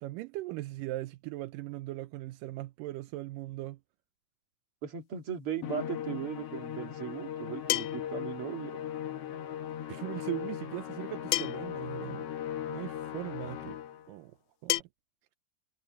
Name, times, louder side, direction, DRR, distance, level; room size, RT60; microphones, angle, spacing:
voice 1, 0.0-3.8 9.9-12.3 12.7-13.8 14.1-14.4 14.6-14.9, right 18 dB, 85° right, 2.3 m, -39 dB
voice 2, 4.8-8.8, right 8 dB, 45° right, 3.0 m, -37 dB
Musical instrument, 5.6-14.1, left 10 dB, 60° left, 1.8 m, -38 dB
sound 1, 6.0-6.1 7.7-8.2 9.7-9.8 11.3-11.8 13.0-13.1 14.7-14.8, left 19 dB, 80° left, 1.9 m, -30 dB
omnidirectional pair, 3.9 m